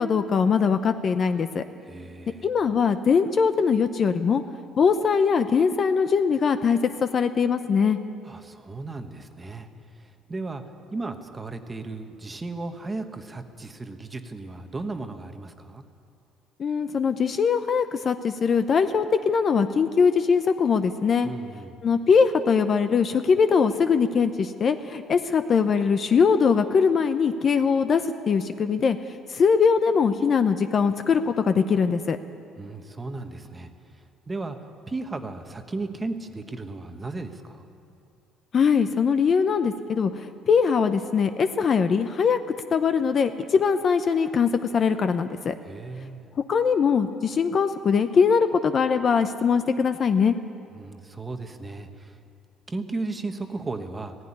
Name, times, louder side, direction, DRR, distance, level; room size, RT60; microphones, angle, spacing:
voice 1, 0.0-1.6 2.4-4.4 4.8-8.0 16.6-21.3 21.8-29.0 29.3-32.2 38.5-42.4 42.7-45.5 46.5-50.3, left 6 dB, 30° left, 9 dB, 0.6 m, -21 dB
voice 2, 1.8-2.5 8.2-9.7 9.9-10.6 10.9-15.8 21.2-21.8 32.6-34.6 34.9-37.7 45.6-46.3 50.7-52.2 52.7-54.2, right 3 dB, 15° right, 6 dB, 1.1 m, -35 dB
17.0 x 15.5 x 9.9 m, 2.4 s
cardioid pair, 160°, 0 cm